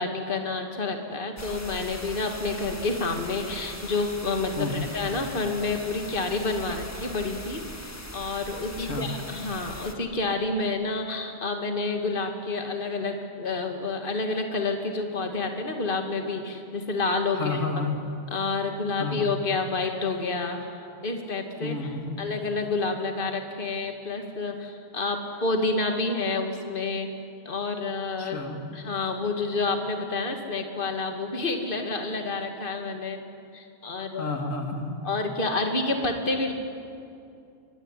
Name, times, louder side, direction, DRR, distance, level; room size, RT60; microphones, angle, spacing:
voice 1, 0.0-17.6 18.3-20.7 21.0-21.8 22.2-27.1 27.5-28.4 28.7-33.2 33.5-34.3 35.0-36.5, left 3 dB, 45° left, 4 dB, 2.3 m, -29 dB
sound 1, 1.4-10.0, left 1 dB, 15° left, 1.6 m, -40 dB
voice 2, 4.6-4.9 8.8-9.1 17.3-18.0 19.0-19.5 21.6-22.2 28.2-28.7 33.9-35.0, left 3 dB, 85° left, 3 dB, 2.7 m, -31 dB
25.0 x 21.0 x 10.0 m, 2.5 s
omnidirectional pair, 1.3 m